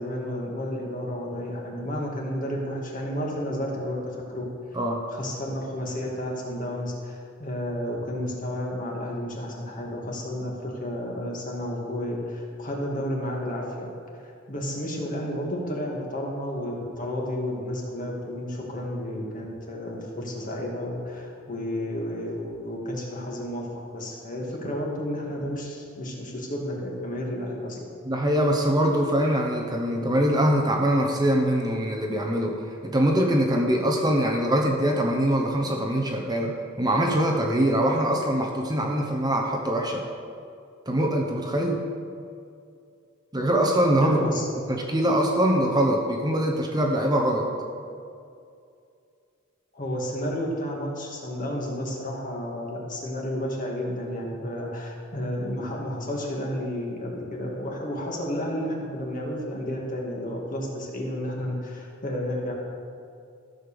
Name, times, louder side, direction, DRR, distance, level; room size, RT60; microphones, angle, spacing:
voice 1, 0.0-4.4 5.1-13.9 14.1-23.7 23.9-27.9 44.0-44.5 49.7-62.5, equal, 40° left, -2 dB, 2.0 m, -31 dB
voice 2, 28.1-40.0 40.9-41.8 43.3-44.4 44.7-47.5, right 1 dB, 20° right, 1 dB, 0.9 m, -23 dB
14.0 x 5.3 x 6.9 m, 2.4 s
head